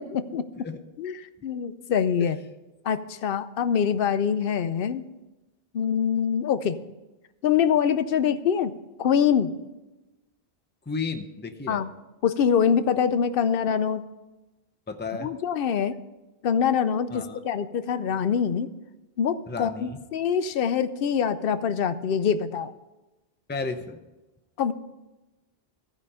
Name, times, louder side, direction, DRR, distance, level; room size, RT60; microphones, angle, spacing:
voice 1, 0.0-0.4 1.0-2.4 2.9-5.1 5.7-6.8 7.4-8.7 9.0-9.5 11.7-11.9 12.2-14.0 15.2-15.9 16.4-18.7 19.2-22.7 24.6-24.7, left 7 dB, 65° left, 12 dB, 0.8 m, -24 dB
voice 2, 10.9-11.8 14.9-15.3 17.1-17.4 19.5-20.0 23.5-24.0, left 4 dB, 15° left, 6 dB, 0.5 m, -33 dB
15.0 x 5.0 x 5.4 m, 1.1 s
omnidirectional pair, 1.0 m